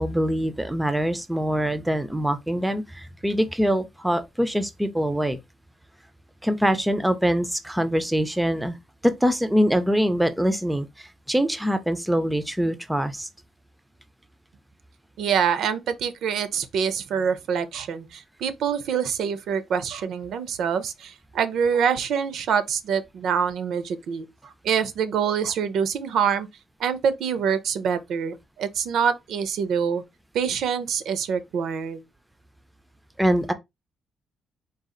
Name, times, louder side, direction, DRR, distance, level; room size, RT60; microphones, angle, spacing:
voice 1, 0.0-5.4 6.4-8.8 9.0-13.3 33.2-33.5, equal, 5° right, 0.4 m, -24 dB
voice 2, 15.2-24.2 24.6-26.5 26.8-30.0 30.3-32.0, right 7 dB, 65° right, 0.5 m, -25 dB
4.0 x 2.4 x 3.7 m
cardioid pair, 160°, 0 cm